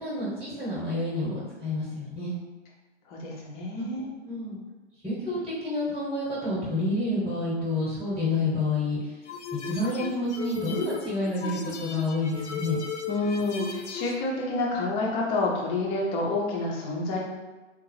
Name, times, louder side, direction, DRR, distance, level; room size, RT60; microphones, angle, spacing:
voice 1, 0.0-2.3 3.7-4.6 5.0-9.0 9.6-12.8, left 2 dB, ahead, -8 dB, 0.8 m, -29 dB
voice 2, 3.1-4.1 13.1-17.2, left 2 dB, 15° left, -2 dB, 0.3 m, -28 dB
sound 1, 9.3-14.2, left 5 dB, 75° left, 0.5 m, -36 dB
3.6 x 2.0 x 3.0 m, 1.2 s
hypercardioid pair, 115°, 36 cm